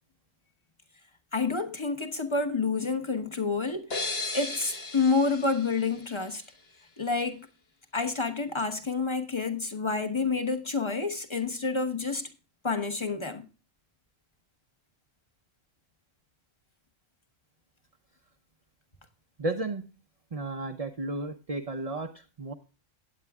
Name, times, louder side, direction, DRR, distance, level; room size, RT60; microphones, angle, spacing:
voice 1, 1.3-6.4 7.0-7.5 7.9-12.3 12.6-13.4, left 4 dB, 25° left, 1.0 m, -29 dB
sound 1, 3.9-6.7, left 3 dB, 50° left, 1.6 m, -36 dB
voice 2, 19.4-19.9 20.3-22.5, right 2 dB, 35° right, 0.7 m, -33 dB
16.5 x 9.2 x 2.3 m
omnidirectional pair, 1.3 m